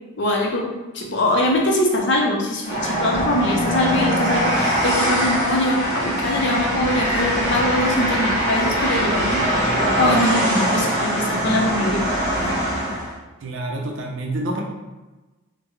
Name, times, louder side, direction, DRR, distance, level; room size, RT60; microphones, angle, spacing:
voice 1, 0.2-9.6 10.0-12.4, left 1 dB, 55° left, 0 dB, 0.6 m, -22 dB
Train, 2.6-13.1, equal, 15° right, 1.3 m, -22 dB
voice 2, 13.4-14.6, right 1 dB, 65° right, 0 dB, 0.5 m, -27 dB
3.6 x 2.1 x 3.2 m, 1.2 s
head